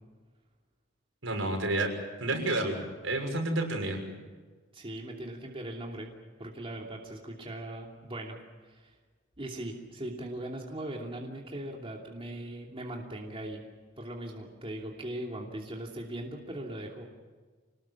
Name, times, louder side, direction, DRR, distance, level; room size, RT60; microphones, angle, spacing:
voice 1, 1.2-1.9 2.2-4.0, right 2 dB, 75° right, 3 dB, 6.3 m, -30 dB
voice 2, 4.7-6.1 6.4-8.9 9.4-13.6 14.0-17.0, right 1 dB, 30° right, 0 dB, 2.9 m, -39 dB
27.5 x 19.5 x 7.5 m, 1.4 s
head